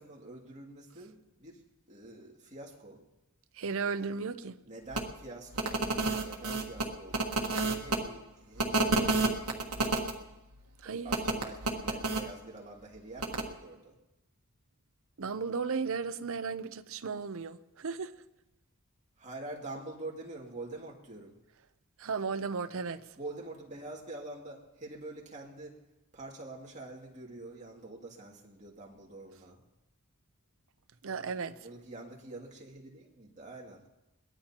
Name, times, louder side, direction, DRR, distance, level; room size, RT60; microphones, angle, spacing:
voice 1, 0.0-1.6 1.9-3.0 4.7-5.8 6.2-9.3 11.0-14.0 19.2-21.3 23.2-25.7 26.1-29.6 31.6-33.9, right 2 dB, 35° right, 2.4 m, -46 dB
voice 2, 3.5-4.6 10.8-11.1 15.2-18.1 22.0-23.1 31.0-31.6, right 5 dB, 65° right, 0.7 m, -35 dB
sound 1, 4.9-5.0 5.5-8.0 8.6-10.1 11.1-12.2 13.2-13.4, right 2 dB, 80° right, 1.5 m, -29 dB
22.0 x 17.5 x 2.9 m
head